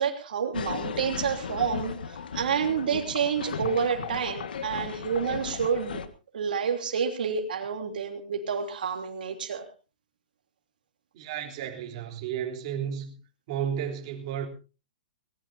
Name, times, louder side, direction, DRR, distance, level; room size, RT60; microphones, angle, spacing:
voice 1, 0.0-1.9 2.3-6.0 6.3-9.6, right 7 dB, 80° right, 4 dB, 3.1 m, -29 dB
sound 1, 0.5-6.1, left 6 dB, 90° left, 1.7 m, -36 dB
voice 2, 11.1-13.1 13.5-14.5, right 9 dB, 40° right, 1 dB, 3.6 m, -32 dB
20.5 x 19.0 x 2.7 m, 0.33 s
hypercardioid pair, 165°, 5 cm